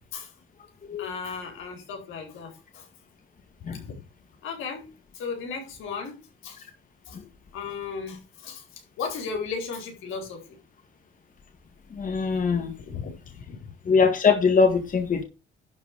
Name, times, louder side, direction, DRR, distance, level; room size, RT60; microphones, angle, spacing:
voice 1, 1.0-2.9 3.7-4.0 4.4-4.9 5.1-6.6 7.1-7.2 7.5-10.6 12.8-13.7, left 5 dB, 85° left, 4.6 m, -36 dB
voice 2, 12.0-12.7 13.9-15.2, left 5 dB, 40° left, 2.0 m, -22 dB
11.5 x 4.6 x 6.9 m
cardioid pair, 90°, 20 cm